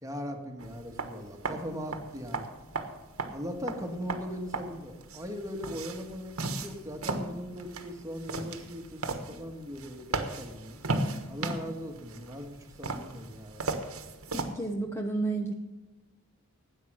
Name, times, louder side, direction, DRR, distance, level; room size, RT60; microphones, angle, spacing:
voice 1, 0.0-2.5 3.3-10.8 11.3-13.8, equal, 15° right, 4 dB, 1.5 m, -39 dB
sound 1, 0.6-14.5, right 3 dB, 70° right, 1.3 m, -36 dB
voice 2, 14.3-15.5, right 3 dB, 10° left, 2 dB, 0.8 m, -31 dB
13.5 x 9.2 x 6.1 m, 1.1 s
head